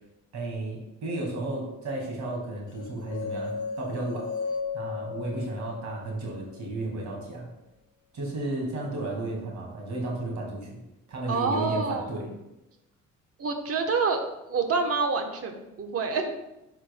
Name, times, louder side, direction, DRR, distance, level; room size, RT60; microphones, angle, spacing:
voice 1, 0.3-4.3 4.7-7.5 8.1-10.8 11.1-12.3, right 2 dB, 65° right, -1 dB, 2.0 m, -33 dB
sound 1, 2.8-6.9, left 4 dB, 80° left, 0.6 m, -35 dB
voice 2, 11.3-12.1 13.4-14.2 14.5-16.3, right 4 dB, 50° right, 5 dB, 1.0 m, -27 dB
10.0 x 4.5 x 2.2 m, 0.92 s
cardioid pair, 90°, 30 cm